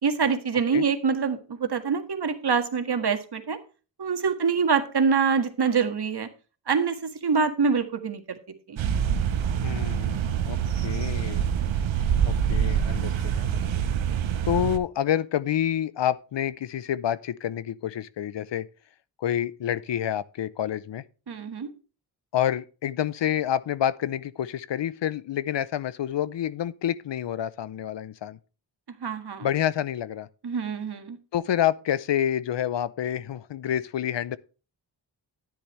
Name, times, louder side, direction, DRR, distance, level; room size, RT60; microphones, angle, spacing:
voice 1, 0.0-3.6 4.0-6.3 6.7-8.4 8.7-8.8 21.3-21.7 29.0-29.5 30.4-31.2, right 5 dB, 55° right, 1.8 m, -25 dB
sound 1, 8.8-14.8, right 8 dB, 75° right, 0.9 m, -25 dB
voice 2, 9.6-11.4 12.2-13.6 14.4-18.7 19.2-21.0 22.3-28.4 29.4-30.3 31.3-34.4, left 10 dB, 65° left, 0.7 m, -28 dB
10.0 x 9.9 x 3.2 m
cardioid pair, 55°, 46 cm